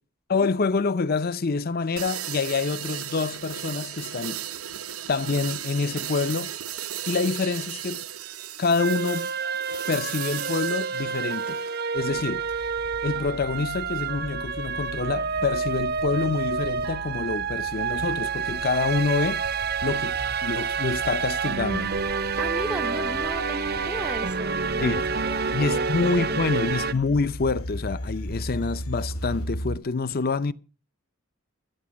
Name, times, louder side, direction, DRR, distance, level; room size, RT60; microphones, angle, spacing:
voice 1, 0.3-4.4 5.1-6.5 7.1-8.1 8.6-9.3 9.9-11.6 11.9-12.7 13.0-19.5 19.8-20.2 20.4-21.9 24.8-25.0 25.5-30.5, left 4 dB, 45° left, 0.6 m, -27 dB
sound 1, 2.0-11.8, right 10 dB, 80° right, 1.1 m, -36 dB
sound 2, 8.8-26.9, right 5 dB, 45° right, 0.7 m, -28 dB
sound 3, 12.0-29.8, equal, 90° left, 3.9 m, -38 dB
voice 2, 22.4-26.7, equal, 5° right, 0.6 m, -36 dB
14.0 x 9.0 x 6.2 m
head